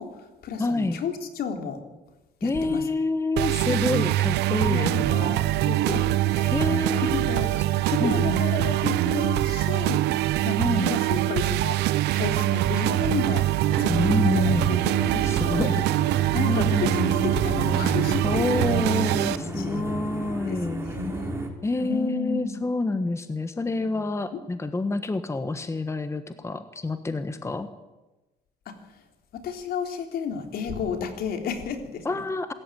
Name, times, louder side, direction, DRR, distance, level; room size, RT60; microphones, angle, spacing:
voice 1, 0.0-1.8 2.4-2.8 3.7-3.8 4.7-6.5 7.1-7.5 7.9-10.0 10.4-10.6 10.9-11.8 12.1-13.5 13.8-15.7 16.3-18.6 19.3-21.3 21.8-22.6 23.8-24.0 28.7-28.8 29.3-32.2, left 6 dB, 65° left, 5 dB, 3.7 m, -32 dB
voice 2, 0.6-1.0 2.4-5.4 6.5-7.1 7.6-7.7 8.0-8.4 10.6-11.0 13.9-14.9 15.3-15.8 16.5-17.0 18.2-20.8 21.6-27.7 32.0-32.5, left 2 dB, 15° left, 10 dB, 1.4 m, -27 dB
sound 1, 3.4-19.4, right 16 dB, 80° right, 0.8 m, -24 dB
sound 2, 13.7-21.5, right 2 dB, 15° right, 3.6 m, -33 dB
25.5 x 14.0 x 9.2 m, 1.1 s
cardioid pair, 110°, 17 cm